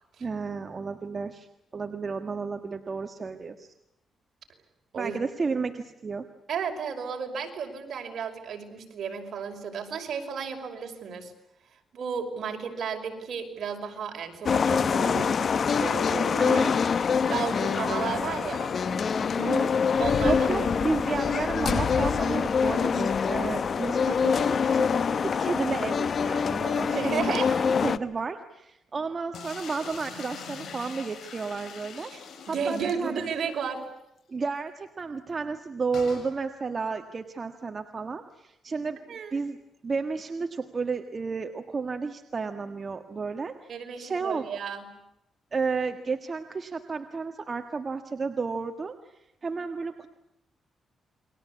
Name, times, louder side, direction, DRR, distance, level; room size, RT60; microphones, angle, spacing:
voice 1, 0.2-1.5 1.7-3.7 5.0-6.3 16.4-16.7 19.4-19.7 20.2-27.4 27.8-32.4 32.7-33.3 34.3-39.6 39.8-44.4 45.5-50.1, right 4 dB, 35° right, 6 dB, 1.7 m, -32 dB
voice 2, 6.5-11.3 11.9-16.6 17.3-18.7 20.0-21.0 26.8-27.6 32.1-32.2 32.5-33.9 39.1-39.4 43.7-44.9, right 6 dB, 60° right, 4 dB, 5.6 m, -33 dB
sound 1, 14.5-28.0, left 6 dB, 50° left, 1.0 m, -25 dB
sound 2, 29.3-33.5 33.9-34.0 34.2-34.3 35.9-36.3, left 6 dB, 75° left, 7.1 m, -43 dB
29.5 x 23.5 x 8.5 m, 0.86 s
cardioid pair, 110°, 0 cm